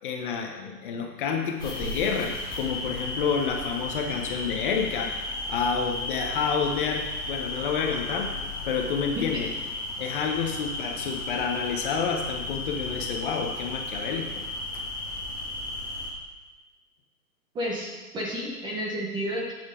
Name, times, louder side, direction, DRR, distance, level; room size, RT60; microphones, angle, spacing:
voice 1, 0.0-5.1 5.5-8.3 8.6-9.5 10.0-14.4, left 6 dB, 35° left, 3 dB, 0.9 m, -29 dB
sound 1, 1.6-16.1, left 2 dB, 10° left, 1.2 m, -34 dB
voice 2, 17.5-19.5, equal, 10° right, -3 dB, 0.8 m, -31 dB
9.9 x 8.0 x 3.7 m, 1.2 s
hypercardioid pair, 150°, 47 cm